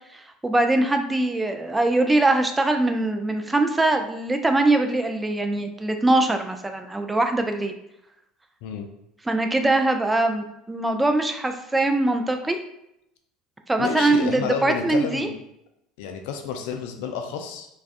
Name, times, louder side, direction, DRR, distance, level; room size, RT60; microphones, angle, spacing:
voice 1, 0.1-7.7 9.3-12.6 13.7-15.3, right 2 dB, 15° right, 5 dB, 0.3 m, -22 dB
voice 2, 13.8-15.4 16.0-17.7, left 6 dB, 70° left, 5 dB, 0.3 m, -30 dB
2.3 x 2.2 x 2.5 m, 0.81 s
hypercardioid pair, 75°, 0 cm